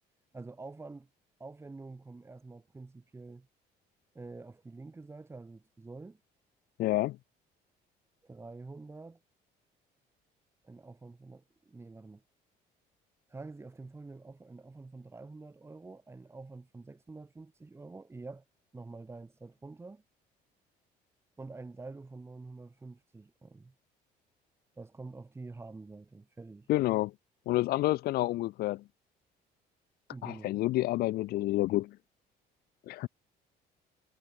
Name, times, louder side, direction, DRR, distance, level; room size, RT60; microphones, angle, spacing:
voice 1, 0.3-1.1 1.4-3.5 4.1-6.2 8.2-9.2 10.6-12.2 13.3-18.4 18.7-20.0 21.4-23.7 24.7-26.7 30.1-30.6, right 3 dB, 15° right, 0.9 m, -47 dB
voice 2, 6.8-7.2 26.7-27.1 27.5-28.8 30.2-31.9 32.9-33.1, left 17 dB, 65° left, 0.4 m, -29 dB
cardioid pair, 110°, 17 cm